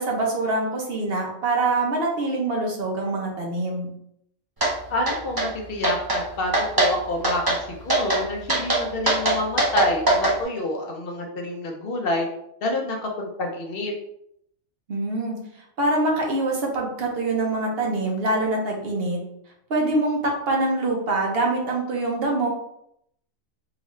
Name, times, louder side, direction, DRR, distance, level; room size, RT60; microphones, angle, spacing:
voice 1, 0.0-3.9 14.9-15.4 15.8-19.2 19.7-22.5, right 2 dB, 50° right, -1 dB, 0.9 m, -24 dB
sound 1, 4.6-4.7 5.1-5.5 5.8-6.2 6.5-6.9 7.2-7.6 7.9-8.2 8.5-10.3, right 2 dB, 30° right, 0.4 m, -21 dB
voice 2, 4.9-12.3 12.6-13.9, left 1 dB, 60° left, 2 dB, 0.6 m, -28 dB
3.7 x 2.4 x 3.1 m, 0.75 s
omnidirectional pair, 1.4 m